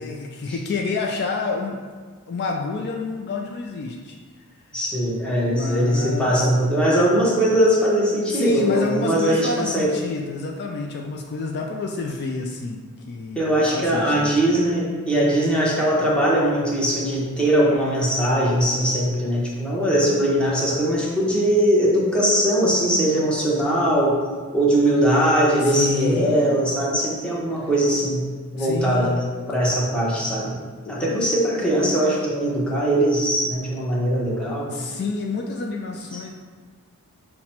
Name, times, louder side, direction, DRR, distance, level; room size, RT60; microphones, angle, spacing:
voice 1, 0.0-1.8 2.3-4.2 5.4-6.4 8.3-12.8 13.1-14.4 25.6-26.6 28.6-29.2 30.8-31.2 34.7-36.3, left 4 dB, 50° left, 1 dB, 0.3 m, -28 dB
voice 2, 4.7-9.9 13.3-24.2 24.5-28.3 28.5-29.2 29.5-30.6 30.9-34.7 36.1-36.2, right 1 dB, 5° left, -6 dB, 0.9 m, -20 dB
5.7 x 2.1 x 4.2 m, 1.6 s
head